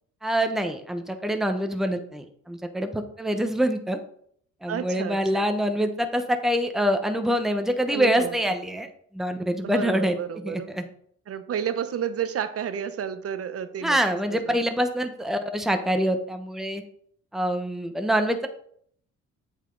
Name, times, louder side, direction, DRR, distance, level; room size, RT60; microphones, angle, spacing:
voice 1, 0.2-4.0 4.6-8.9 9.1-10.8 13.8-16.8 17.3-18.5, equal, ahead, 6 dB, 0.9 m, -25 dB
voice 2, 4.7-5.5 7.9-8.4 9.6-10.7 11.3-14.0 14.3-14.6, right 8 dB, 50° right, 11 dB, 0.9 m, -31 dB
8.1 x 6.6 x 3.9 m, 0.64 s
cardioid pair, 90°, 30 cm